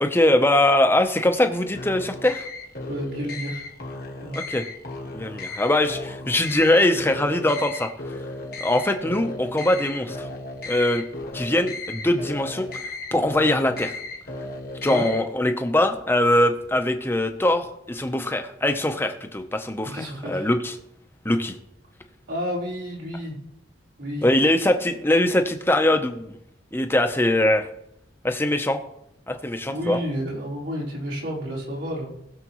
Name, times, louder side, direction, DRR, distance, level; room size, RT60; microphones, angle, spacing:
voice 1, 0.0-2.5 4.3-4.6 5.1-7.9 8.6-10.3 10.6-11.1 11.3-12.7 13.1-13.9 14.8-20.7 21.2-21.6 24.2-26.4 26.7-27.7 28.2-28.8 29.3-30.0, left 1 dB, 15° left, 7 dB, 0.8 m, -22 dB
sound 1, 1.7-15.3, left 2 dB, 55° left, 1.3 m, -35 dB
voice 2, 2.9-3.6 4.2-4.4 14.9-15.1 19.9-20.5 22.3-23.4 24.0-24.3 29.7-32.1, equal, 80° right, -6 dB, 4.5 m, -30 dB
20.0 x 6.7 x 3.1 m, 0.81 s
head